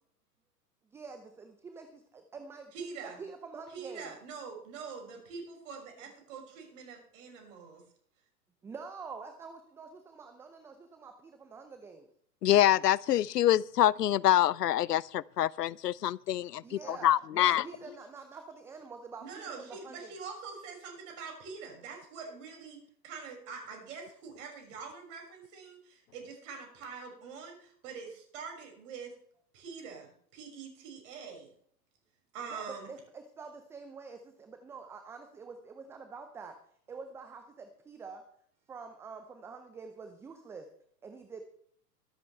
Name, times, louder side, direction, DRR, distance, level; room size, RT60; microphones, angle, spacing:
voice 1, 0.9-4.2 8.6-12.1 16.6-20.1 32.5-36.6 36.9-38.2 38.7-40.7 41.0-41.4, right 4 dB, 5° right, 0.5 m, -47 dB
voice 2, 2.7-3.2 3.7-7.8 19.2-22.8 23.0-29.1 29.5-31.5 32.3-32.9, right 5 dB, 50° right, 6.5 m, -44 dB
voice 3, 12.4-17.6, left 12 dB, 75° left, 0.6 m, -26 dB
24.0 x 8.4 x 3.4 m
figure-of-eight pair, 110°, 48 cm